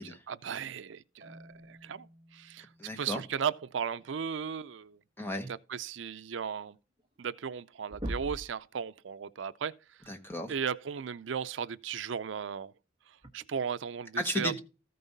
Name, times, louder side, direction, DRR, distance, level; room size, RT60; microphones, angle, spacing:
voice 1, 0.0-2.7 3.0-5.0 5.5-6.8 7.2-9.7 10.5-12.7 13.1-14.5, right 7 dB, 75° right, 0.5 m, -36 dB
Marimba xylophone, 1.2-4.2, equal, 45° right, 1.4 m, -57 dB
voice 2, 2.8-3.2 5.2-5.5 10.1-10.5 14.2-14.6, left 1 dB, 10° left, 1.1 m, -34 dB
sound 1, 7.0-7.1 7.4-7.6 7.9-8.6 10.3-10.4 12.2-12.4 13.2-13.3, right 1 dB, 25° right, 1.3 m, -38 dB
14.0 x 5.4 x 4.0 m
head